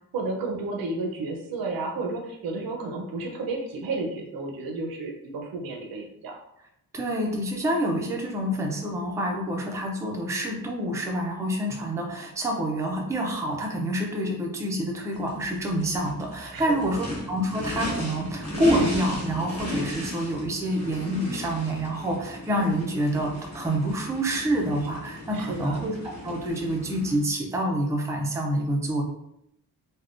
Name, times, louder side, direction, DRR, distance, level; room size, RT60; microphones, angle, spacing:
voice 1, 0.1-6.4 16.5-17.0 25.3-25.9, right 3 dB, 80° right, 1 dB, 0.6 m, -32 dB
voice 2, 6.9-29.0, right 1 dB, 10° right, 0 dB, 0.3 m, -27 dB
Race car auto racing / Idling / Accelerating revving vroom, 15.1-27.2, left 1 dB, 50° left, 1.0 m, -36 dB
3.4 x 2.1 x 2.4 m, 0.77 s
wide cardioid pair, 170°, 35 cm